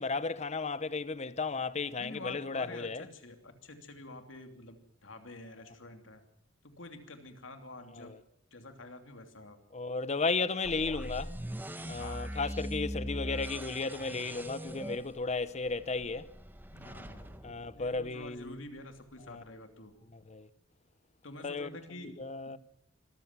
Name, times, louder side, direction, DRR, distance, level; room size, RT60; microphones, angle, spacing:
voice 1, 0.0-3.1 8.0-8.2 9.7-11.3 11.9-16.3 17.4-18.6 19.3-19.4 20.1-20.5 21.4-21.8 22.0-22.6, left 4 dB, 35° left, 0.8 m, -34 dB
voice 2, 2.0-6.2 6.6-8.2 8.5-9.6 11.8-12.3 16.7-17.4 17.7-20.0 21.2-22.2 22.5-22.6, left 2 dB, 90° left, 2.9 m, -48 dB
sound 1, 10.6-18.5, equal, 10° right, 1.3 m, -41 dB
25.5 x 14.0 x 7.5 m
head